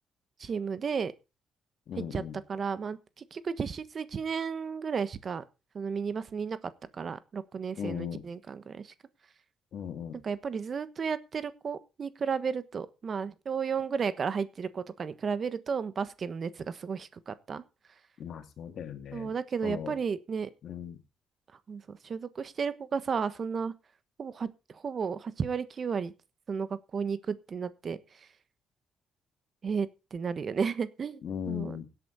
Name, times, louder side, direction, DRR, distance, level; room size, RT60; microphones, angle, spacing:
voice 1, 0.4-1.1 2.0-2.2 2.5-5.4 5.7-6.6 6.9-8.9 10.2-17.6 19.1-20.5 21.7-23.7 24.2-26.1 26.5-28.3 29.6-31.2 31.5-31.8, right 6 dB, 45° right, 14 dB, 1.2 m, -33 dB
voice 2, 1.9-2.4 7.8-8.2 9.7-10.2 18.2-19.3 19.6-19.9 20.6-21.0 31.2-31.9, left 8 dB, 65° left, 7 dB, 2.4 m, -37 dB
17.0 x 8.5 x 4.1 m, 0.29 s
cardioid pair, 90°, 0 cm